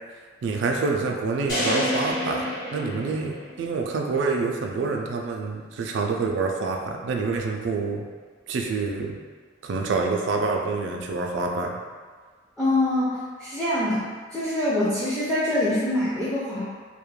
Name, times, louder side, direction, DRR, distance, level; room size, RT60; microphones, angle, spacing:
voice 1, 0.4-2.5 2.7-8.1 8.5-9.2 9.6-11.7, right 4 dB, 70° right, 2 dB, 0.3 m, -27 dB
sound 1, 1.5-3.8, left 1 dB, 45° left, 1.1 m, -28 dB
voice 2, 12.6-14.1 14.3-16.6, left 1 dB, 5° left, -10 dB, 0.4 m, -24 dB
2.3 x 2.1 x 3.1 m, 1.5 s
head